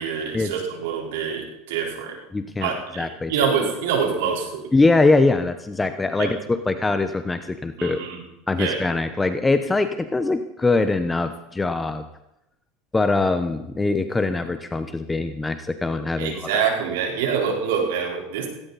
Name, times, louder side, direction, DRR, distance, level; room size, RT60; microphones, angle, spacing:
voice 1, 0.0-2.2 2.6-4.7 6.2-6.3 7.8-8.2 8.6-8.8 16.2-18.5, right 6 dB, 85° right, 1 dB, 4.2 m, -25 dB
voice 2, 2.3-2.7 3.0-3.3 4.7-8.0 8.5-12.1 12.9-16.6, left 3 dB, 10° left, 9 dB, 0.9 m, -22 dB
17.5 x 17.0 x 4.1 m, 0.87 s
supercardioid pair, 125°, 0 cm